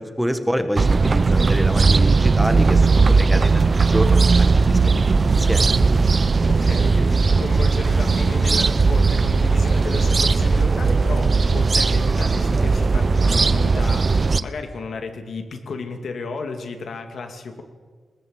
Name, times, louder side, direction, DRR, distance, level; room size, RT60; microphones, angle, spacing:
voice 1, 0.0-5.8, equal, ahead, 8 dB, 1.5 m, -27 dB
sound 1, 0.8-14.4, right 4 dB, 40° right, 0.7 m, -17 dB
voice 2, 6.5-17.6, left 4 dB, 75° left, 5 dB, 2.4 m, -33 dB
20.0 x 18.0 x 7.9 m, 1.5 s
wide cardioid pair, 105°, 0 cm